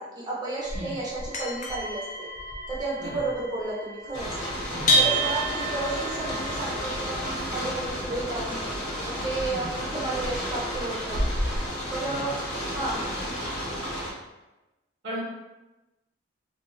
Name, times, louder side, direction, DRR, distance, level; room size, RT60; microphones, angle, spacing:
voice 1, 0.0-2.3 2.7-4.3 4.9-8.6 9.0-11.2 11.9-12.3 12.6-13.1, right 2 dB, 20° right, -7 dB, 0.7 m, -32 dB
sound 1, 0.6-11.7, equal, 40° left, 0.3 m, -31 dB
voice 2, 0.7-0.9 3.0-3.2 4.7-5.0 9.5-9.7 12.1-12.3 15.0-15.2, equal, 65° right, -7 dB, 0.6 m, -36 dB
sound 2, 4.1-14.1, equal, 85° left, 1.3 m, -33 dB
2.3 x 2.3 x 3.0 m, 1.0 s
head